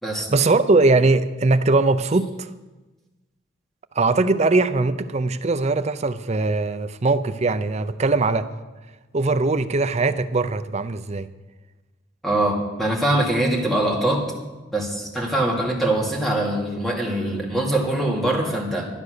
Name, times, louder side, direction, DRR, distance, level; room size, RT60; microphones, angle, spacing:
voice 1, 0.1-2.5 4.0-8.5 9.1-11.3, right 3 dB, 35° right, 11 dB, 0.5 m, -20 dB
voice 2, 12.2-14.2 14.7-18.8, right 1 dB, ahead, -2 dB, 2.6 m, -23 dB
12.0 x 11.5 x 6.5 m, 1.2 s
head